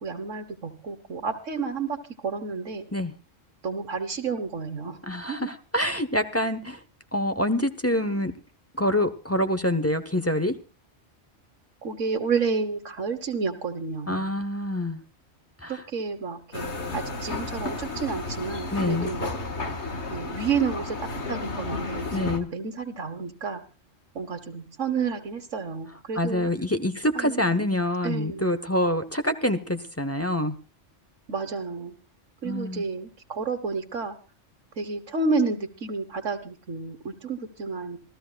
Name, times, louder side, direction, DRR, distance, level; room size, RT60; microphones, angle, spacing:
voice 1, 0.0-2.9 3.6-5.0 5.3-5.5 11.8-14.3 15.7-19.3 20.1-23.6 24.2-26.5 27.1-27.6 28.0-28.5 31.3-32.0 32.4-34.2 34.8-38.0, right 4 dB, 80° right, 8 dB, 1.8 m, -30 dB
voice 2, 5.0-6.8 7.1-8.3 8.8-10.5 14.1-15.0 15.6-15.7 18.7-19.1 22.1-22.5 26.2-30.6 32.4-32.8, left 1 dB, 15° left, 8 dB, 1.0 m, -26 dB
sound 1, 16.5-22.4, left 3 dB, 65° left, 2.0 m, -32 dB
27.0 x 14.0 x 2.3 m, 0.33 s
omnidirectional pair, 1.3 m